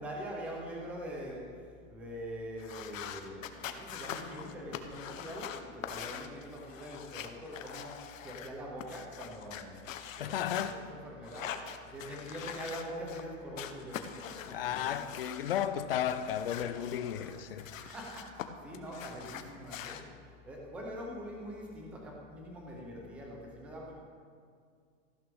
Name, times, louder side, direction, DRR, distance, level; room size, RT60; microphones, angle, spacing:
voice 1, 0.0-15.1 17.2-20.2 20.4-23.9, equal, 5° right, 0.4 m, -44 dB
sound 1, 2.6-8.5 8.8-10.7 11.2-13.2 13.6-15.7 16.0-18.5 18.7-20.0, left 9 dB, 75° left, 0.9 m, -44 dB
voice 2, 10.2-10.8 14.5-17.7, left 9 dB, 45° left, 0.5 m, -34 dB
14.5 x 12.0 x 3.5 m
supercardioid pair, 170°, 40 cm